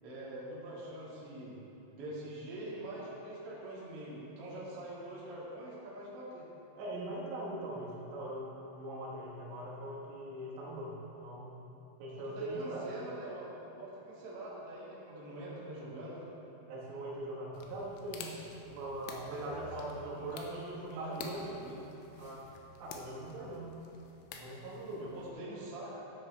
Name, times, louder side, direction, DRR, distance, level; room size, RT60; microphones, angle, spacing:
voice 1, 0.0-1.6 2.0-6.5 12.1-16.3 19.3-21.8 25.0-26.0, right 1 dB, 50° right, -8 dB, 1.7 m, -44 dB
voice 2, 6.8-11.0 11.2-11.5 12.0-12.9 16.7-21.4 22.2-22.5 22.8-23.8 24.3-25.1, right 1 dB, 75° right, -4 dB, 3.5 m, -41 dB
sound 1, 17.5-25.3, left 5 dB, 85° left, 2.8 m, -50 dB
12.5 x 8.3 x 3.2 m, 2.9 s
omnidirectional pair, 6.0 m